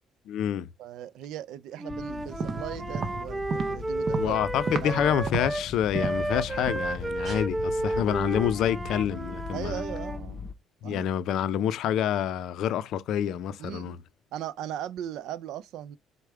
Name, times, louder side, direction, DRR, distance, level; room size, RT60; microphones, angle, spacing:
voice 1, 0.3-0.7 4.2-9.8 10.8-14.0, left 10 dB, 75° left, 0.4 m, -27 dB
voice 2, 0.8-4.4 4.8-5.2 9.5-10.5 10.8-11.1 13.6-14.0 14.3-16.0, right 11 dB, 80° right, 0.3 m, -38 dB
Wind instrument woodwind instrument, 1.8-5.7 5.9-10.2, right 2 dB, 20° right, 0.6 m, -32 dB
sound 1, 1.9-10.5, left 5 dB, 40° left, 0.7 m, -40 dB
sound 2, 2.2-5.0 5.3-6.3 6.7-7.0 7.2-7.4, right 4 dB, 50° right, 0.7 m, -33 dB
4.8 x 2.1 x 4.5 m
supercardioid pair, 80°, 0 cm